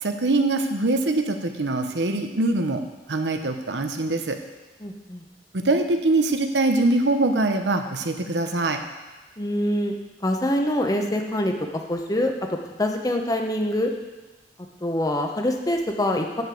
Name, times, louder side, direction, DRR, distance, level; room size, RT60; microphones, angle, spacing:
voice 1, 0.0-2.8 3.1-4.4 5.5-8.8, right 2 dB, 80° right, 6 dB, 1.0 m, -23 dB
voice 2, 4.8-5.2 9.4-9.9 10.2-12.3 12.8-13.9 14.8-16.4, left 1 dB, 20° left, 3 dB, 1.0 m, -25 dB
10.5 x 5.3 x 7.7 m, 1.2 s
head